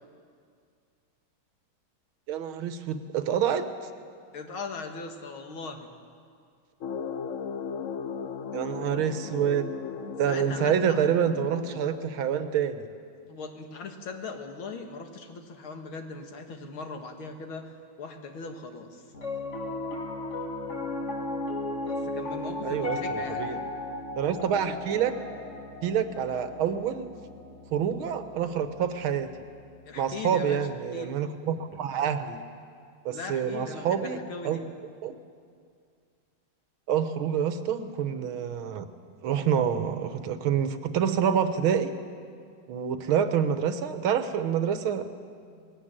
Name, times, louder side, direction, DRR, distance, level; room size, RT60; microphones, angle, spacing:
voice 1, 2.3-3.7 8.5-9.7 10.2-12.9 22.6-23.6 24.2-25.1 25.8-27.1 27.7-29.3 30.0-32.4 33.1-34.2 34.4-34.6 35.0-35.1 36.9-38.9 39.2-41.9 42.7-45.0, right 8 dB, 90° right, 9 dB, 1.9 m, -27 dB
voice 2, 4.3-5.9 10.3-11.0 13.3-17.7 18.0-19.0 21.8-23.5 29.9-31.2 33.1-34.6, left 4 dB, 85° left, 4 dB, 2.5 m, -39 dB
sound 1, 6.8-12.5, left 6 dB, 60° left, 0.8 m, -37 dB
Piano, 19.1-29.5, left 2 dB, 35° left, 1.9 m, -36 dB
19.5 x 17.5 x 8.9 m, 2.2 s
omnidirectional pair, 2.2 m